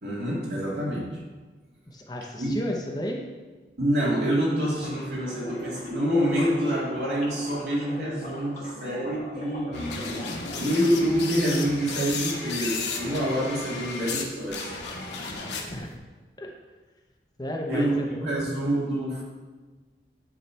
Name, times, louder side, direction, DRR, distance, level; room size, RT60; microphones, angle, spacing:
voice 1, 0.0-1.2 2.4-2.6 3.8-14.7 17.7-19.2, equal, 80° right, -5 dB, 2.0 m, -27 dB
voice 2, 1.9-3.2 15.7-15.9 16.4-16.5 17.4-18.3, left 1 dB, 20° left, 1 dB, 0.7 m, -33 dB
sound 1, 4.8-10.7, left 1 dB, 45° left, 1.3 m, -41 dB
sound 2, 9.7-14.2 14.5-15.9, left 4 dB, 80° left, 1.0 m, -33 dB
9.4 x 3.2 x 4.4 m, 1.3 s
head